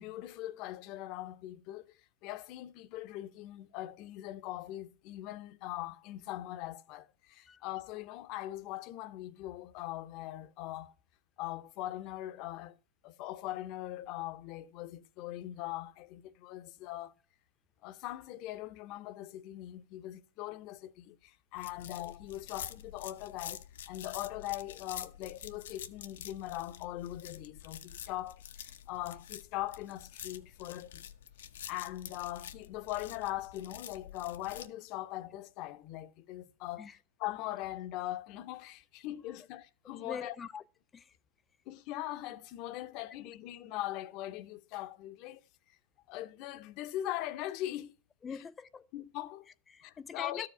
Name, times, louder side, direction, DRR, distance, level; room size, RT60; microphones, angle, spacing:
voice 1, 0.0-10.9 11.4-12.8 13.0-17.1 17.8-31.1 31.7-40.3 41.7-45.4 46.1-47.9 48.9-49.5 49.8-50.5, left 15 dB, 40° left, 0.7 m, -41 dB
sound 1, 21.6-34.7, left 10 dB, 85° left, 0.9 m, -48 dB
voice 2, 40.0-40.6 40.9-41.1 48.2-48.9 49.7-50.5, left 6 dB, 15° left, 0.4 m, -43 dB
13.0 x 5.0 x 5.6 m
supercardioid pair, 150°, 0 cm